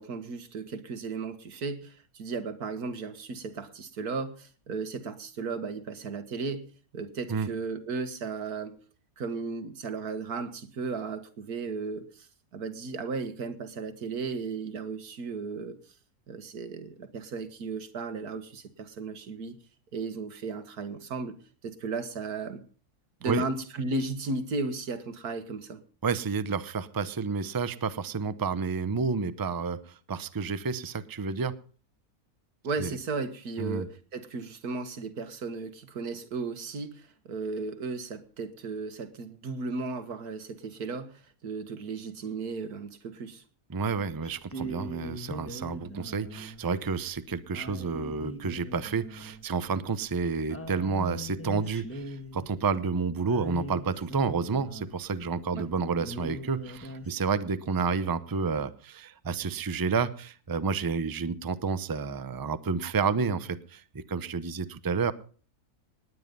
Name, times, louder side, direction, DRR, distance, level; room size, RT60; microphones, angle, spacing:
voice 1, 0.0-6.7 6.9-8.8 9.2-12.3 12.5-15.8 16.3-19.6 19.9-21.4 21.6-22.6 23.2-25.8 32.6-43.4 55.5-55.7, right 4 dB, 75° right, 2.0 m, -35 dB
voice 2, 26.0-31.5 32.8-32.9 33.6-33.9 43.7-65.1, right 5 dB, 25° right, 0.5 m, -30 dB
sound 1, 44.2-55.3 55.7-55.8 56.0-57.1, equal, 10° left, 1.7 m, -41 dB
19.0 x 9.8 x 5.3 m
omnidirectional pair, 1.6 m